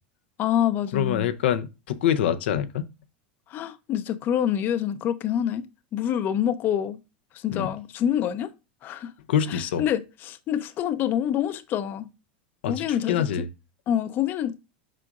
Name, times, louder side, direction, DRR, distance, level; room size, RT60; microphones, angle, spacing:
voice 1, 0.4-1.3 3.5-5.6 5.9-7.0 7.4-8.5 8.8-9.1 9.5-12.1 12.6-13.3 13.9-14.5, left 10 dB, 35° left, 0.6 m, -26 dB
voice 2, 0.9-2.9 7.5-7.7 9.3-9.8 12.6-13.4, left 9 dB, 80° left, 0.7 m, -25 dB
7.5 x 5.0 x 2.5 m
supercardioid pair, 135°, 6 cm